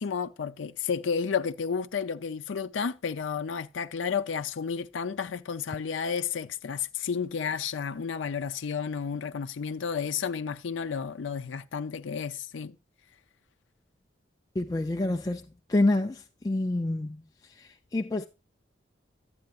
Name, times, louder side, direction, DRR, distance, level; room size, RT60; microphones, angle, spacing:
voice 1, 0.0-12.8, left 6 dB, 90° left, 0.5 m, -32 dB
voice 2, 14.6-15.4 15.7-17.2 17.6-18.2, left 2 dB, 20° left, 0.3 m, -27 dB
11.5 x 8.7 x 2.4 m
head